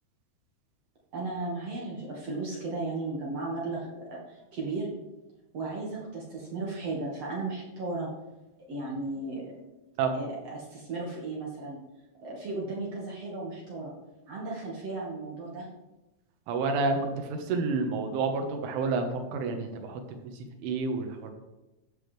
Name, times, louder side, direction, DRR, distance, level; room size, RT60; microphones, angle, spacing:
voice 1, 1.1-4.9 5.5-8.1 8.7-9.6 10.1-11.8 12.2-13.9 14.3-15.7, right 3 dB, 60° right, -3 dB, 1.7 m, -35 dB
voice 2, 16.5-17.0 17.3-20.0 20.6-21.3, right 4 dB, 80° right, 5 dB, 3.8 m, -29 dB
14.5 x 10.5 x 3.3 m, 1.0 s
omnidirectional pair, 5.5 m